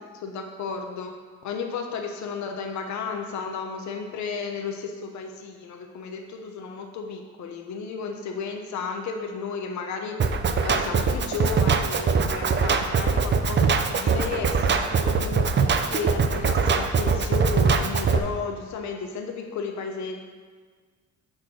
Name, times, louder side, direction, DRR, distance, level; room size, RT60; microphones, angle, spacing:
voice 1, 0.1-10.2 10.6-20.2, left 5 dB, 70° left, 4 dB, 0.8 m, -33 dB
Drum kit, 10.2-18.2, right 5 dB, 35° right, 0.6 m, -22 dB
6.2 x 4.3 x 6.3 m, 1.5 s
cardioid pair, 90°, 30 cm